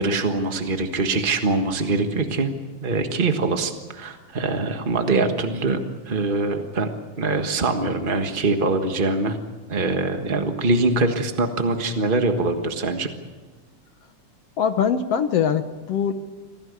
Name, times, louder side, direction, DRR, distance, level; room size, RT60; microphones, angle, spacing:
voice 1, 0.0-2.5 2.8-5.8 6.1-6.9 7.2-9.4 9.7-13.1, right 3 dB, 60° right, 5 dB, 0.5 m, -23 dB
voice 2, 14.6-16.1, left 7 dB, 65° left, 9 dB, 1.7 m, -22 dB
26.0 x 17.0 x 8.3 m, 1.3 s
omnidirectional pair, 3.6 m